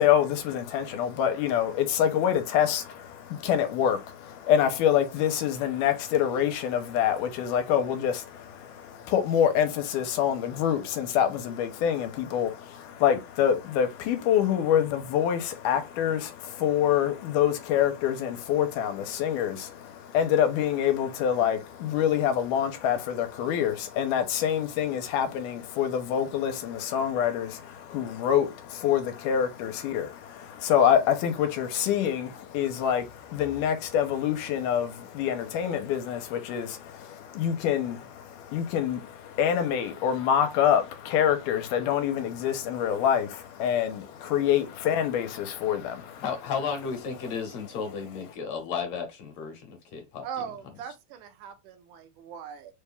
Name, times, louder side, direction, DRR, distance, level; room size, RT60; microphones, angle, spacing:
voice 1, 0.0-46.2, left 9 dB, 90° left, 2.2 m, -26 dB
voice 2, 46.2-50.2, left 6 dB, 65° left, 1.8 m, -33 dB
voice 3, 50.2-52.7, right 8 dB, 80° right, 2.0 m, -40 dB
5.1 x 2.2 x 3.4 m
omnidirectional pair, 3.7 m